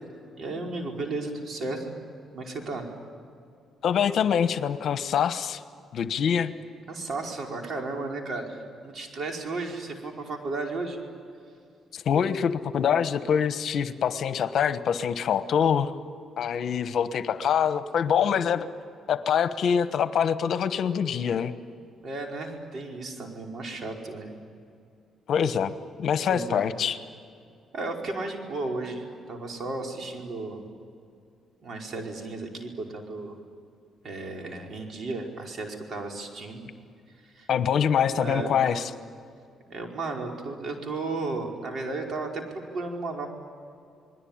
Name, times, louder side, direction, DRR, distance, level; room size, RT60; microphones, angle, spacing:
voice 1, 0.3-1.9 2.3-2.9 6.9-11.0 22.0-24.3 26.2-26.6 27.7-30.6 31.6-33.3 34.0-36.6 37.2-37.5 38.2-38.8 39.7-43.3, right 3 dB, 50° right, 1 dB, 4.9 m, -34 dB
voice 2, 3.8-5.6 5.9-6.5 11.9-15.9 16.4-18.7 19.1-21.5 25.3-25.7 26.0-27.0 37.5-38.9, left 8 dB, 65° left, 11 dB, 1.2 m, -25 dB
28.5 x 21.0 x 8.9 m, 2.4 s
cardioid pair, 90°, 0 cm